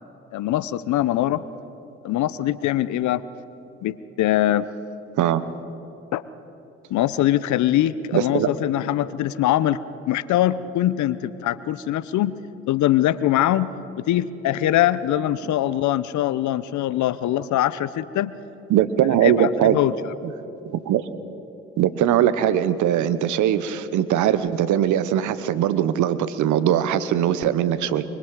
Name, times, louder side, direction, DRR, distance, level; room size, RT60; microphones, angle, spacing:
voice 1, 0.3-1.4 2.0-3.2 3.8-4.7 6.1-6.2 6.9-9.8 10.1-12.3 12.7-18.3 19.2-19.9, left 13 dB, 65° left, 17 dB, 0.8 m, -22 dB
voice 2, 8.1-8.5 18.7-19.8 20.7-21.0 21.8-28.0, right 10 dB, 70° right, 14 dB, 1.0 m, -20 dB
24.0 x 24.0 x 4.9 m, 2.9 s
hypercardioid pair, 45°, 31 cm